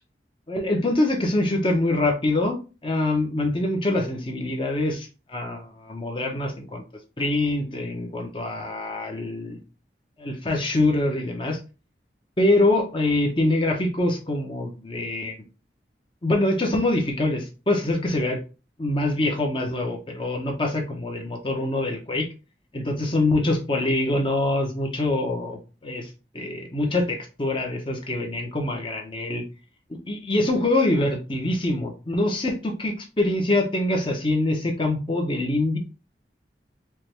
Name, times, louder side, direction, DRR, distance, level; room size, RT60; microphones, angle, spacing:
voice 1, 0.5-6.8 7.2-9.6 10.2-11.6 12.4-15.4 16.2-18.4 18.8-22.3 22.7-26.1 26.3-29.4 30.1-35.8, left 2 dB, 30° left, 2 dB, 0.8 m, -24 dB
4.6 x 2.3 x 3.3 m, 0.31 s
head